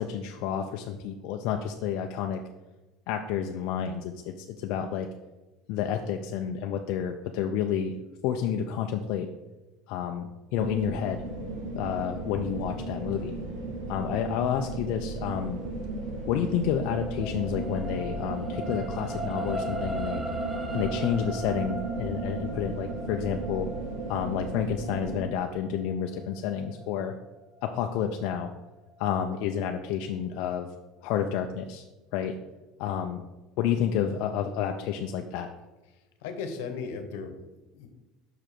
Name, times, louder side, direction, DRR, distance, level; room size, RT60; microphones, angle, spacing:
voice 1, 0.0-2.4 3.1-5.1 5.7-8.0 8.2-9.3 9.9-11.2 11.7-13.4 13.9-15.6 16.3-20.2 20.7-23.7 24.1-27.1 27.6-28.5 29.0-30.7 31.0-31.8 32.1-32.4 32.8-33.3 33.6-35.5, left 8 dB, 65° left, 4 dB, 0.5 m, -30 dB
sound 1, 10.5-25.2, right 2 dB, 75° right, 1.2 m, -35 dB
sound 2, 16.4-28.9 29.4-29.6, right 1 dB, 5° right, 0.6 m, -39 dB
voice 2, 35.9-37.9, left 5 dB, 90° left, 7 dB, 1.0 m, -37 dB
5.9 x 4.9 x 4.5 m, 1.1 s
cardioid pair, 145°, 0 cm